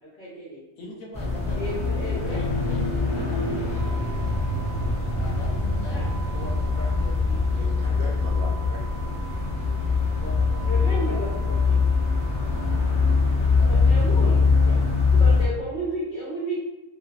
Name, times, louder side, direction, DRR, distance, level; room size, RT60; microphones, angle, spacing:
voice 1, 0.0-0.6 1.5-2.4 5.6-6.1 10.6-11.8 13.6-14.4 15.1-16.6, right 1 dB, 50° left, -7 dB, 0.6 m, -33 dB
voice 2, 0.8-1.6 2.3-3.7 5.1-8.1 10.2-11.6 12.5-12.8 13.6-14.4, left 2 dB, 75° left, -2 dB, 1.0 m, -42 dB
sound 1, 1.1-15.5, left 4 dB, 5° left, 0.5 m, -23 dB
sound 2, 3.6-12.7, right 6 dB, 20° right, 0.9 m, -45 dB
voice 3, 7.6-9.5, right 2 dB, 80° right, -2 dB, 1.0 m, -41 dB
2.6 x 2.1 x 2.3 m, 0.99 s
omnidirectional pair, 1.5 m